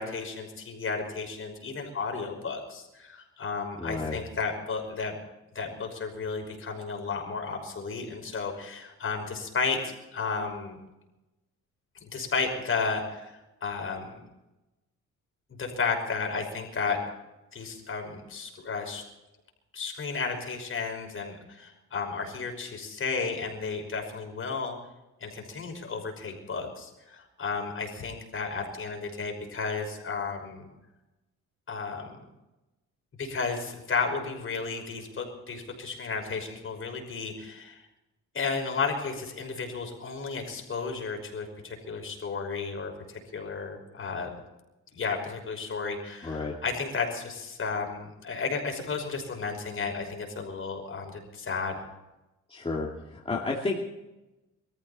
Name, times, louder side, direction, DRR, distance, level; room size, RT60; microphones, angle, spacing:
voice 1, 0.0-5.2 5.5-10.8 12.0-14.2 15.6-17.0 17.5-19.0 19.7-24.7 25.2-30.7 31.7-32.2 33.2-37.8 38.3-44.3 44.9-51.8, left 4 dB, 45° left, 3 dB, 5.7 m, -33 dB
voice 2, 3.8-4.2 46.2-46.5 52.5-53.8, left 3 dB, 20° left, -2 dB, 2.6 m, -31 dB
24.0 x 14.0 x 4.3 m, 0.99 s
cardioid pair, 90°, 30 cm